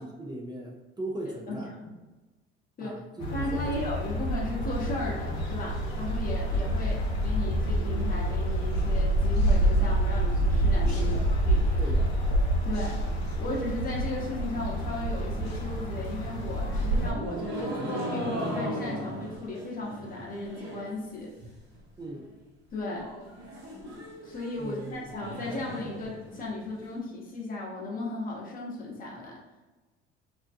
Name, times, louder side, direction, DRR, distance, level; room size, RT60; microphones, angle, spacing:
voice 1, 0.0-1.7 2.8-3.8 10.9-11.3 11.8-12.2 22.0-22.3 24.6-25.1, right 1 dB, 15° right, -1 dB, 0.4 m, -38 dB
voice 2, 1.5-1.9 2.8-3.0 3.3-11.1 11.4-11.6 12.6-13.0 13.4-21.3 22.7-23.1 23.8-29.4, left 2 dB, 30° left, -4 dB, 0.8 m, -36 dB
sound 1, 3.2-17.1, right 1 dB, 80° left, 0.6 m, -27 dB
sound 2, 15.9-21.0 21.2-21.8 22.1-22.2 22.4-22.5 22.8-26.8, right 1 dB, 80° right, 0.9 m, -37 dB
2.5 x 2.2 x 2.5 m, 1.2 s
hypercardioid pair, 70°, 31 cm